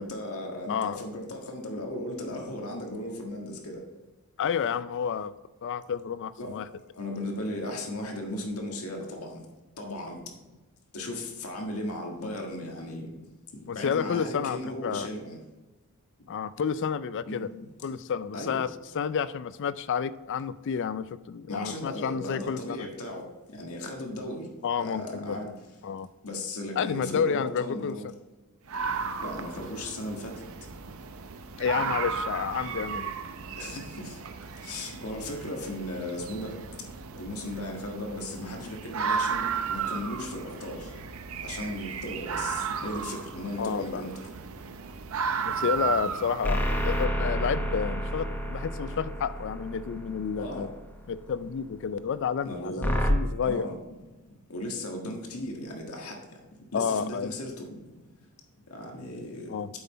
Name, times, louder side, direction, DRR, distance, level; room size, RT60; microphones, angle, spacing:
voice 1, 0.0-3.8 6.4-6.5 7.0-9.4 9.8-10.2 10.9-13.1 13.5-15.4 17.3-17.7 18.3-18.6 21.5-23.2 23.5-24.5 24.8-25.5 26.2-28.0 29.2-30.3 31.8-31.9 33.6-34.2 34.6-36.5 37.2-40.9 41.4-44.1 48.9-49.0 50.4-50.7 52.4-52.9 53.4-53.8 54.5-56.2 56.7-57.9 58.7-59.5, left 1 dB, 85° left, 1 dB, 1.6 m, -36 dB
voice 2, 0.7-1.0 4.4-5.3 5.6-6.7 13.7-15.1 16.3-17.5 17.8-18.7 18.9-22.9 24.6-25.4 25.8-26.1 26.8-28.0 31.6-33.1 43.6-44.0 45.4-50.7 51.1-53.7 56.7-57.3 59.5-59.7, left 7 dB, 55° left, 16 dB, 0.4 m, -30 dB
sound 1, 28.7-47.0, right 6 dB, 70° right, 0.6 m, -34 dB
sound 2, 46.4-51.0 52.8-53.1, equal, 10° left, 0.8 m, -30 dB
7.8 x 5.7 x 4.1 m, 1.1 s
head